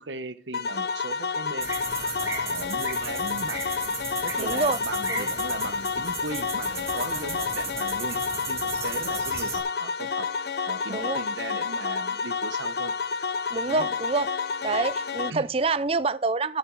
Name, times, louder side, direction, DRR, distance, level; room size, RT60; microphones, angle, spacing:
voice 1, 0.0-1.7 2.2-3.7 4.2-8.2 8.5-10.3 10.7-12.9 13.7-13.9 15.3-15.5, right 3 dB, 85° right, 1.1 m, -37 dB
sound 1, 0.5-15.3, left 5 dB, 60° left, 0.6 m, -30 dB
sound 2, 1.6-9.6, right 4 dB, 15° right, 2.3 m, -35 dB
sound 3, 1.7-2.6 4.0-5.1 6.5-7.7 8.7-9.7, right 3 dB, 55° right, 4.2 m, -48 dB
voice 2, 4.4-4.8 5.1-5.3 10.9-11.2 13.5-14.3 14.6-16.6, right 3 dB, 30° right, 0.5 m, -27 dB
13.5 x 8.1 x 3.9 m
head